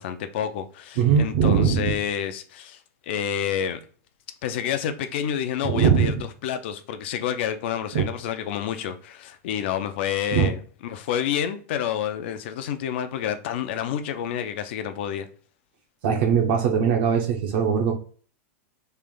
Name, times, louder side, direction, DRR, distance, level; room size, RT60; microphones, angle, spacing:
voice 1, 0.0-3.8 4.4-15.3, left 9 dB, 50° left, 0.5 m, -29 dB
voice 2, 1.0-2.0 5.6-6.1 7.9-8.0 10.3-10.5 16.0-17.9, right 7 dB, 50° right, 0.7 m, -20 dB
3.3 x 2.5 x 3.6 m
supercardioid pair, 175°, 8 cm